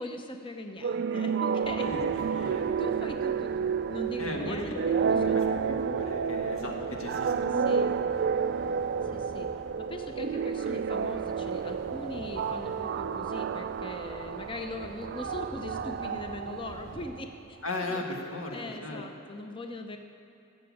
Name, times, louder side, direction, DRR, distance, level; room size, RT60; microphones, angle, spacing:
voice 1, 0.0-1.9 2.4-2.5 2.8-5.7 7.5-8.0 9.0-9.5 9.8-17.6 17.9-18.0 18.5-20.0, left 1 dB, 25° left, 5 dB, 0.6 m, -40 dB
sound 1, 0.8-17.2, right 6 dB, 55° right, 0.3 m, -30 dB
sound 2, 1.6-17.1, equal, 45° left, 2.5 m, -48 dB
voice 2, 4.2-4.8 5.0-7.9 17.6-19.0, left 1 dB, 85° left, 1 dB, 1.8 m, -36 dB
15.0 x 6.9 x 8.5 m, 2.6 s
head